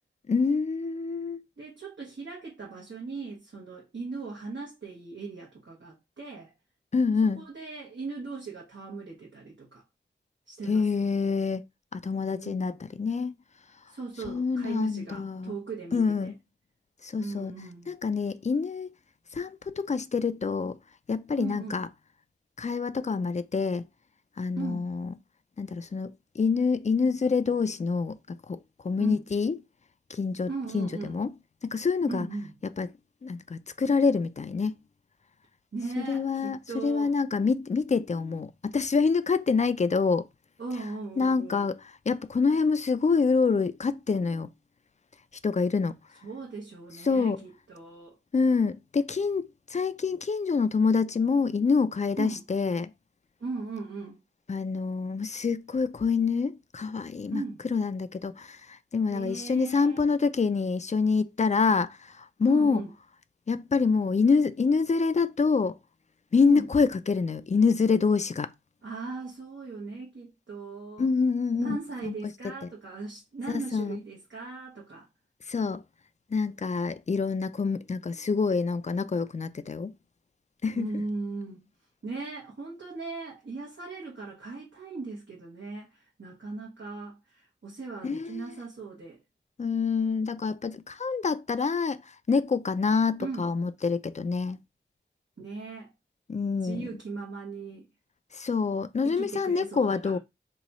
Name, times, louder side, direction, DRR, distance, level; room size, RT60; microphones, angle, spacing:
voice 1, 0.3-1.4 6.9-7.5 10.7-11.6 11.9-13.3 14.3-15.6 15.9-16.3 17.0-17.5 17.9-18.9 19.3-20.8 21.1-21.9 22.6-23.8 24.4-25.1 25.6-28.2 28.5-28.6 28.8-29.6 30.1-30.5 30.7-31.3 31.6-32.3 32.8-32.9 33.2-34.8 36.0-40.3 41.2-41.8 42.1-44.5 45.4-46.0 47.0-47.4 48.3-52.9 54.5-57.4 57.7-62.8 63.5-65.8 66.3-68.5 71.0-71.8 72.0-72.1 72.4-72.5 73.7-74.0 75.5-75.8 76.3-79.9 80.6-81.0 88.0-88.4 89.6-94.6 96.3-96.8 98.3-100.2, left 4 dB, 35° left, 0.4 m, -26 dB
voice 2, 1.6-6.5 7.3-9.8 10.5-10.9 12.3-12.8 13.9-16.3 17.2-17.9 21.4-21.8 24.6-24.9 29.0-29.2 30.5-31.2 32.1-32.5 35.7-37.2 40.6-41.7 46.2-48.2 52.2-52.4 53.4-54.2 57.3-57.6 59.1-60.0 62.5-62.9 66.5-66.7 68.8-71.1 71.6-75.1 80.7-81.7 82.0-89.2 93.2-93.4 95.4-95.9 96.6-97.9 99.0-100.2, right 3 dB, 75° right, 1.1 m, -38 dB
3.0 x 2.3 x 4.0 m
wide cardioid pair, 50°, 20 cm